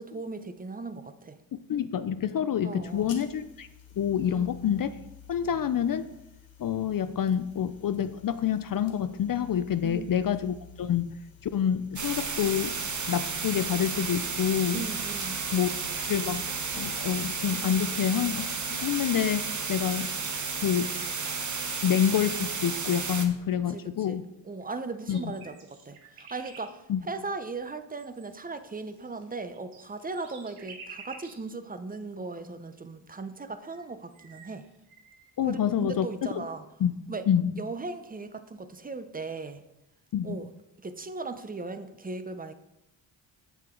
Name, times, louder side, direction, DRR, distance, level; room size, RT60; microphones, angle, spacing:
voice 1, 0.0-1.4 2.6-3.1 4.3-4.5 9.8-10.2 14.7-15.4 23.7-34.7 35.4-36.7 37.1-37.3 37.6-39.6 40.2-40.5 40.8-42.5, right 3 dB, 20° right, 10 dB, 0.7 m, -38 dB
voice 2, 1.7-3.7 4.0-5.0 5.3-6.1 6.6-11.2 11.4-12.8 13.1-14.8 15.5-15.7 16.1-16.5 16.7-20.1 20.6-20.9 21.8-24.3 25.1-25.3 26.9-27.0 35.4-36.5 36.8-36.9 37.3-37.5 40.1-40.4, left 9 dB, 45° left, 12 dB, 0.5 m, -27 dB
sound 1, 2.8-19.4, left 8 dB, 65° left, 1.7 m, -52 dB
sound 2, 12.0-23.3, right 5 dB, 35° right, 1.1 m, -32 dB
sound 3, 23.4-23.5 24.5-24.6 24.9-26.7 27.9-31.5 32.0-32.1 33.2-33.3 33.6-35.3, right 4 dB, 90° right, 1.4 m, -51 dB
7.9 x 7.4 x 3.8 m, 0.89 s
cardioid pair, 65°, 48 cm